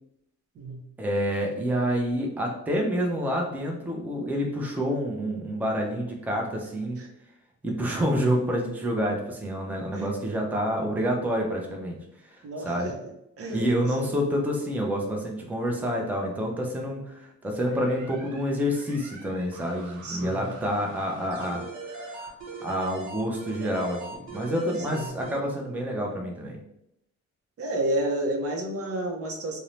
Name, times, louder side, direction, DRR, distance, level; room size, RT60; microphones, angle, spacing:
voice 1, 1.0-7.0 7.6-12.0 12.2-12.9 13.5-22.3 22.6-24.0 24.3-26.6, equal, 5° right, 0 dB, 0.5 m, -28 dB
voice 2, 12.4-12.9 13.4-14.1 20.0-20.5 24.9-25.2 27.6-29.6, right 1 dB, 50° right, 2 dB, 0.6 m, -31 dB
sound 1, 17.7-25.4, right 3 dB, 80° right, 0.8 m, -41 dB
2.6 x 2.0 x 3.1 m, 0.80 s
cardioid pair, 90°, 30 cm